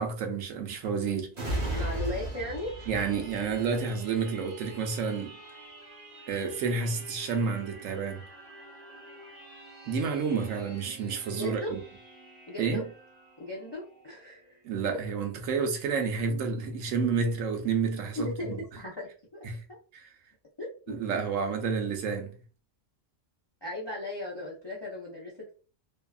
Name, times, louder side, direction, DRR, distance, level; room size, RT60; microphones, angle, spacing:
voice 1, 0.0-1.3 2.9-5.4 6.3-8.3 9.9-11.8 12.6-12.8 14.6-18.6 19.4-19.6 19.9-20.1 20.9-22.4, right 5 dB, 80° right, 1.0 m, -30 dB
sound 1, 1.3-14.7 15.1-15.2, right 1 dB, 40° right, 0.8 m, -41 dB
voice 2, 1.7-2.7 11.3-11.7 12.5-12.8 13.4-14.5 18.1-19.4 20.6-21.0 23.6-25.5, left 1 dB, 40° left, 0.4 m, -37 dB
2.7 x 2.3 x 2.3 m
omnidirectional pair, 1.4 m